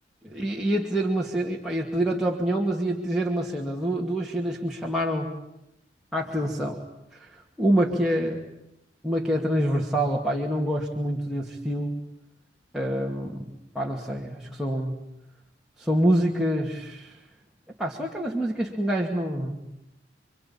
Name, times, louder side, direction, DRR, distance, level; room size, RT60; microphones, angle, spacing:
voice 1, 0.2-5.4 6.1-6.8 7.1-8.4 9.0-12.0 12.7-15.0 15.8-17.2 17.8-19.6, right 1 dB, ahead, -4 dB, 2.4 m, -26 dB
28.0 x 24.5 x 8.8 m, 0.85 s
head